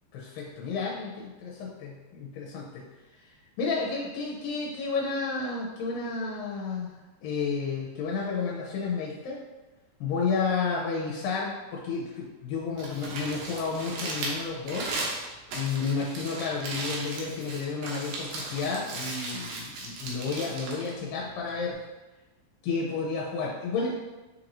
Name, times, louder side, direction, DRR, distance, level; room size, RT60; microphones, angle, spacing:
voice 1, 0.1-2.8 3.6-6.9 7.2-9.4 10.0-14.9 15.5-21.8 22.6-23.9, left 4 dB, 90° left, -4 dB, 2.4 m, -31 dB
Crumpling crinkling, 12.6-21.7, right 2 dB, 85° right, 2.7 m, -37 dB
6.8 x 3.0 x 2.6 m, 1.1 s
omnidirectional pair, 4.1 m